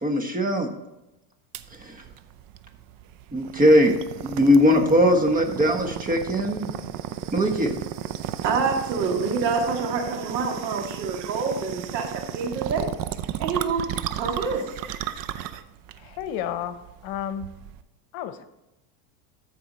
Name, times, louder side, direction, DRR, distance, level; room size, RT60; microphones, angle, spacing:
voice 1, 0.0-0.7 1.8-2.0 3.3-3.9 4.2-6.7 7.3-7.7, equal, 15° right, 4 dB, 1.5 m, -20 dB
sound 1, 1.5-17.8, right 11 dB, 45° right, 0.6 m, -34 dB
voice 2, 8.4-12.8 13.4-13.9 14.1-14.7, right 5 dB, 90° right, 2 dB, 2.1 m, -27 dB
voice 3, 16.0-17.5 18.1-18.4, left 9 dB, 65° left, 11 dB, 1.0 m, -32 dB
13.5 x 4.8 x 4.1 m, 0.94 s
supercardioid pair, 105°, 49 cm